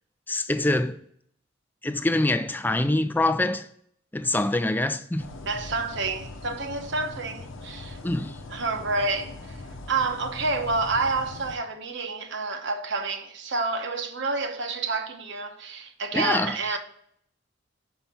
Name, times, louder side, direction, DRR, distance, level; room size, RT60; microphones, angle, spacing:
voice 1, 0.3-1.0 1.8-3.7 4.1-5.3 8.0-8.4 16.1-16.8, left 2 dB, 10° left, 0.4 m, -25 dB
sound 1, 5.2-11.6, left 2 dB, 75° left, 0.9 m, -41 dB
voice 2, 5.5-8.0 8.5-9.6 9.9-16.8, right 3 dB, 65° right, 1.0 m, -29 dB
5.7 x 5.7 x 5.6 m
head